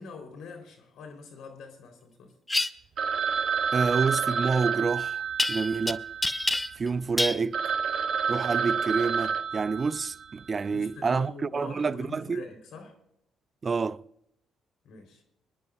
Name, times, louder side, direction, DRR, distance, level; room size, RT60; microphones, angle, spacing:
voice 1, 0.0-2.3 10.7-13.0 14.8-15.2, left 4 dB, 75° left, 3.7 m, -45 dB
sound 1, 2.5-2.7 5.4-5.9 6.2-6.9 7.2-7.4, left 2 dB, 15° left, 0.7 m, -27 dB
Telephone, 3.0-6.8 7.2-7.3 7.5-10.4, right 6 dB, 65° right, 0.8 m, -29 dB
voice 2, 3.7-5.2 5.5-6.0 6.8-7.6 8.3-12.4 13.6-14.0, right 4 dB, 40° right, 0.4 m, -28 dB
24.0 x 10.5 x 2.5 m
supercardioid pair, 60°, 0 cm